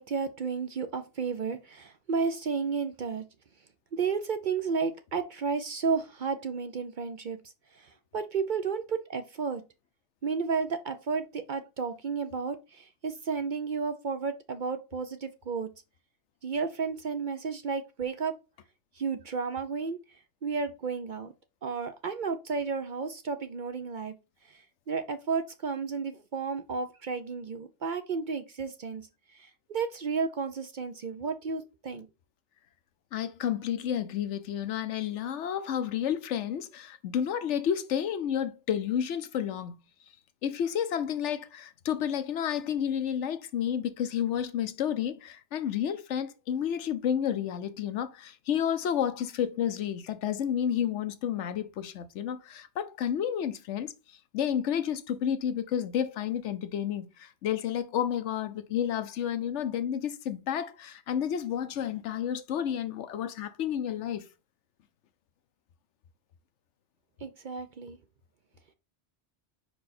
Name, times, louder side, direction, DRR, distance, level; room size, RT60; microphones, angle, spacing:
voice 1, 0.0-3.2 3.9-7.4 7.8-9.6 10.2-15.7 16.4-18.3 19.0-20.0 20.4-21.3 21.6-24.1 24.5-24.6 24.9-29.1 29.3-32.1 67.2-68.0, right 5 dB, 55° right, 0.6 m, -32 dB
voice 2, 33.1-39.7 40.4-64.3, left 9 dB, 80° left, 1.0 m, -31 dB
5.2 x 4.8 x 4.1 m
omnidirectional pair, 1.2 m